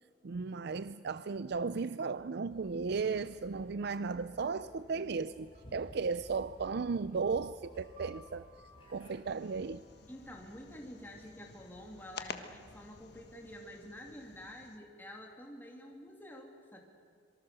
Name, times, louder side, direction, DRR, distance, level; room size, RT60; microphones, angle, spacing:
voice 1, 0.2-8.5 8.9-9.8, right 4 dB, 60° right, 0.5 m, -35 dB
sound 1, 2.5-14.5, equal, 30° left, 7.3 m, -58 dB
sound 2, 4.4-11.9, equal, 40° right, 6.8 m, -63 dB
sound 3, 9.3-14.8, left 5 dB, 60° left, 1.5 m, -51 dB
voice 2, 10.1-16.8, equal, 10° left, 2.7 m, -49 dB
26.0 x 24.0 x 6.8 m
head